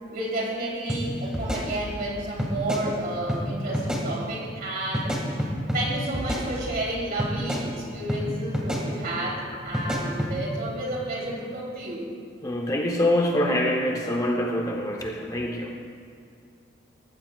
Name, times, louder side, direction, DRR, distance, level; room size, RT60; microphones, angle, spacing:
voice 1, 0.1-5.5 5.7-12.1, right 1 dB, 50° right, -3 dB, 3.3 m, -31 dB
sound 1, 0.9-1.0 1.3-2.1 2.4-2.8 3.3-3.4 3.7-4.0 4.9-5.8 6.1-6.9 7.2-7.6 8.1-8.2 8.5-8.8 9.7-10.3, equal, 5° right, 1.9 m, -28 dB
voice 2, 12.4-15.7, left 1 dB, 20° left, 1 dB, 0.9 m, -25 dB
19.5 x 15.0 x 2.4 m, 2.4 s
head